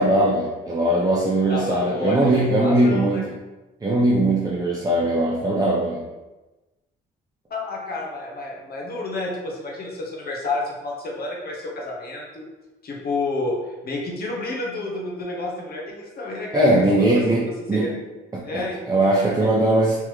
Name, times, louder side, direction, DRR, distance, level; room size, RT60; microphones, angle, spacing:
voice 1, 0.0-3.4 3.8-6.0 16.5-17.9 18.3-20.0, right 1 dB, 20° right, -3 dB, 0.6 m, -20 dB
voice 2, 1.5-3.2 7.5-12.5 12.8-17.2 17.7-17.9 18.4-19.5, left 2 dB, 50° left, -1 dB, 1.1 m, -30 dB
3.5 x 3.0 x 3.1 m, 1.1 s
cardioid pair, 90°, 20 cm